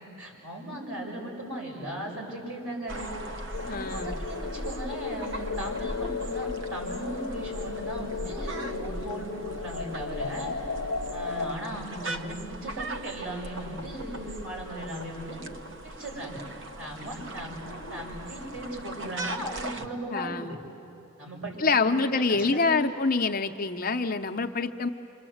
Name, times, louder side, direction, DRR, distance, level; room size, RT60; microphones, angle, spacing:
voice 1, 0.0-3.1 3.6-10.5 11.1-15.4 15.8-16.4 16.8-20.6 21.2-22.8, right 1 dB, 80° right, -2 dB, 7.1 m, -37 dB
sound 1, 2.9-19.9, right 1 dB, 60° right, 0.9 m, -39 dB
sound 2, 3.5-11.5, left 5 dB, 90° left, 0.7 m, -35 dB
voice 2, 3.7-4.2 20.1-20.6 21.6-24.9, left 4 dB, 40° left, 6 dB, 0.8 m, -26 dB
28.5 x 26.0 x 7.9 m, 2.9 s
head